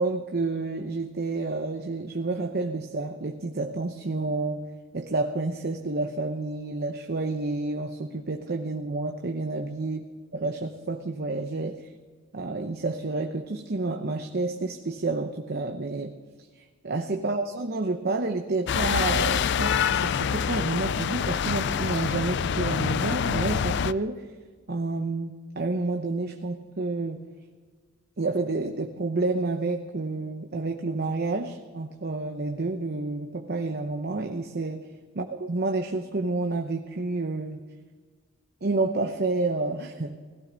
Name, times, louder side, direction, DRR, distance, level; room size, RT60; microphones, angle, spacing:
voice 1, 0.0-4.7 4.9-10.0 10.3-11.9 12.3-16.2 16.6-24.3 24.7-27.2 28.2-34.9 35.2-37.7 38.6-40.2, right 3 dB, 55° right, 5 dB, 0.8 m, -29 dB
sound 1, 18.7-23.9, left 7 dB, 60° left, 0.4 m, -26 dB
17.5 x 15.5 x 4.0 m, 1.5 s
head